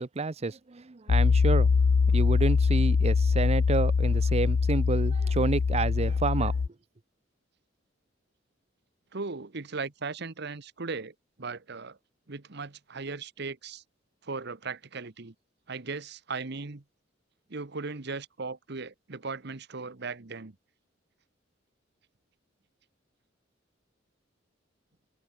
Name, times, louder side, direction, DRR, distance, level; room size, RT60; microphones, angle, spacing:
voice 1, 0.0-1.7 2.1-6.6, right 3 dB, 35° right, 0.6 m, -29 dB
Piano, 1.1-6.7, left 5 dB, 80° left, 0.5 m, -23 dB
voice 2, 9.1-12.0 12.3-13.8 14.2-15.3 15.7-16.8 17.5-20.5, right 4 dB, 60° right, 1.2 m, -37 dB
open air
head